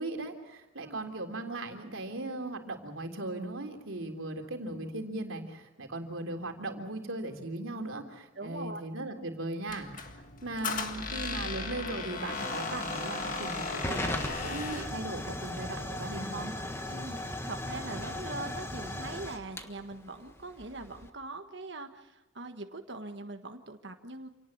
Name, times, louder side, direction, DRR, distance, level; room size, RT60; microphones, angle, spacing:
voice 1, 0.0-16.5, right 2 dB, 85° right, 3 dB, 3.4 m, -38 dB
voice 2, 8.3-8.8 16.9-24.3, right 2 dB, 60° right, 5 dB, 1.6 m, -42 dB
Squeak, 9.7-15.0, left 4 dB, 40° left, 1.9 m, -36 dB
Hiss / Fire / Tick, 10.9-21.1, left 1 dB, 15° left, 1.4 m, -39 dB
27.5 x 18.5 x 7.3 m, 1.0 s
head